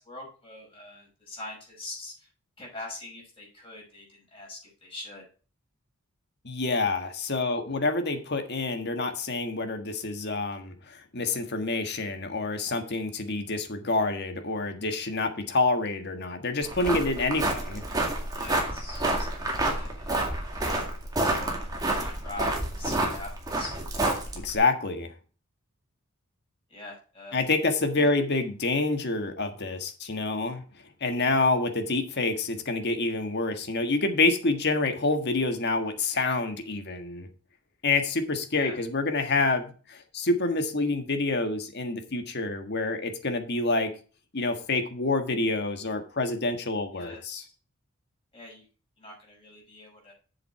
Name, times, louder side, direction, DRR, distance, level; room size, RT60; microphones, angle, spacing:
voice 1, 0.0-2.3 2.6-5.2 18.3-20.1 20.5-21.0 21.3-23.7 26.7-27.4 27.9-28.1 38.5-38.8 46.9-47.4 48.3-48.6 49.0-50.1, left 2 dB, 25° left, -1 dB, 5.7 m, -43 dB
voice 2, 6.4-10.7 11.1-17.8 24.3-25.1 27.3-30.6 31.0-37.3 37.8-43.9 44.3-47.4, left 3 dB, 50° left, 6 dB, 1.5 m, -27 dB
sound 1, 16.6-24.6, right 2 dB, 20° right, 2.2 m, -29 dB
7.5 x 7.4 x 4.7 m, 0.37 s
head